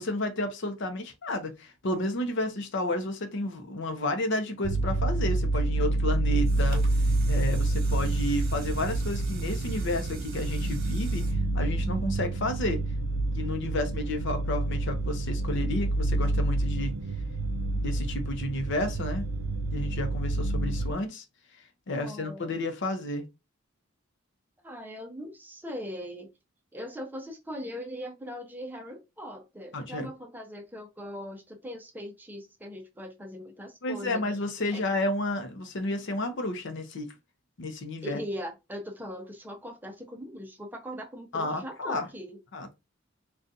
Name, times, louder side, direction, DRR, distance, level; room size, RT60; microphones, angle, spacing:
voice 1, 0.0-6.8 7.3-11.3 11.5-12.8 13.3-17.0 17.8-19.2 19.7-21.2 21.9-23.2 29.7-30.1 33.8-37.1 37.6-38.2 41.3-42.1 42.5-42.8, left 1 dB, 60° left, 0.7 m, -31 dB
sound 1, 4.6-20.9, right 2 dB, 75° right, 0.4 m, -28 dB
sound 2, 6.4-12.5 13.0-13.1, right 4 dB, 50° right, 1.0 m, -47 dB
voice 2, 21.9-22.5 24.6-26.3 26.7-34.2 34.7-34.8 38.0-42.4, equal, 10° right, 0.6 m, -40 dB
3.7 x 2.3 x 2.6 m
head